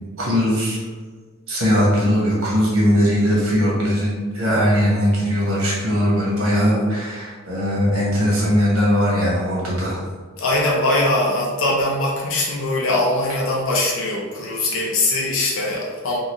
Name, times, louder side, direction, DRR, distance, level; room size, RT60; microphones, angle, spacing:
voice 1, 0.2-0.8 1.5-10.0, equal, 70° right, -5 dB, 1.3 m, -19 dB
voice 2, 10.4-16.2, left 2 dB, 60° left, -2 dB, 0.5 m, -21 dB
3.9 x 2.4 x 3.0 m, 1.5 s
head